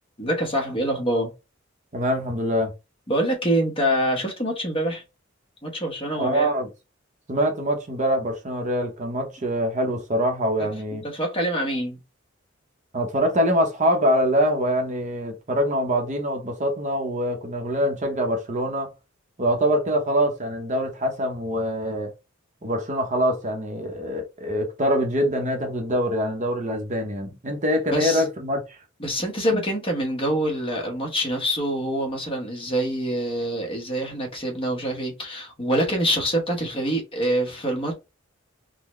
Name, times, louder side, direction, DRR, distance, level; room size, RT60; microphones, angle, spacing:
voice 1, 0.2-1.3 3.1-5.0 5.6-6.5 10.6-10.7 11.0-12.0 27.9-28.2 29.0-37.9, equal, 25° left, 1.0 m, -25 dB
voice 2, 1.9-2.7 6.2-6.7 7.3-11.1 12.9-18.9 19.4-22.1 22.6-28.6, equal, 40° right, 0.7 m, -24 dB
3.7 x 2.1 x 3.0 m
head